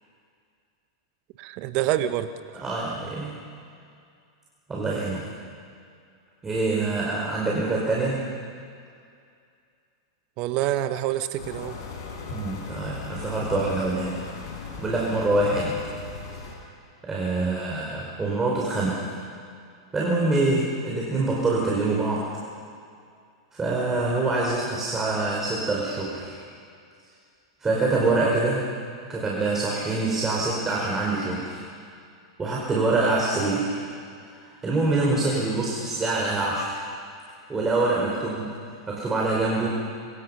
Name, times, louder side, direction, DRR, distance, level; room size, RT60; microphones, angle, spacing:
voice 1, 1.4-2.3 10.4-11.8, right 13 dB, 45° right, 11 dB, 1.4 m, -26 dB
voice 2, 2.6-3.4 4.7-5.3 6.4-8.3 12.3-14.2 14.8-15.8 16.3-16.4 17.0-19.1 19.9-22.3 23.5-26.4 27.6-28.6 29.1-31.6 32.4-33.8 34.4-36.8 37.5-38.5 38.9-39.7, right 2 dB, 15° right, -3 dB, 5.0 m, -25 dB
sound 1, 11.4-16.5, left 5 dB, 65° left, 6.4 m, -38 dB
26.5 x 25.5 x 5.7 m, 2.3 s
figure-of-eight pair, 95°, 2 cm